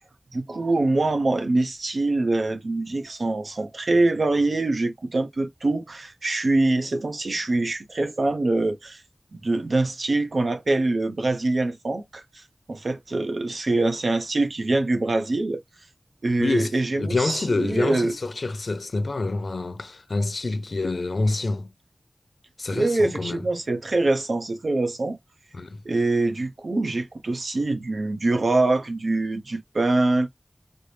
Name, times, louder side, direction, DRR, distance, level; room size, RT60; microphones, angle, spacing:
voice 1, 0.3-9.0 9.4-12.4 12.7-15.6 16.2-18.1 22.7-25.2 25.8-30.3, right 2 dB, 85° right, 0.8 m, -24 dB
voice 2, 16.4-21.7 22.6-23.5 25.5-25.8, left 3 dB, 80° left, 0.5 m, -27 dB
4.4 x 2.0 x 3.3 m
wide cardioid pair, 60°, 0 cm